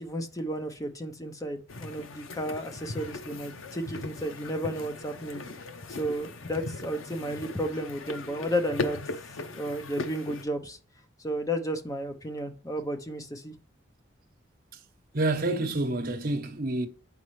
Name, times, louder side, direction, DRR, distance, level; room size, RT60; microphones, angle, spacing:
voice 1, 0.0-5.4 5.9-9.0 9.5-10.8 11.2-13.5, equal, 15° left, 0.7 m, -33 dB
sound 1, 1.7-10.5, left 3 dB, 85° left, 0.7 m, -38 dB
voice 2, 15.1-16.9, right 2 dB, 50° right, 0.9 m, -28 dB
7.2 x 5.4 x 3.1 m
head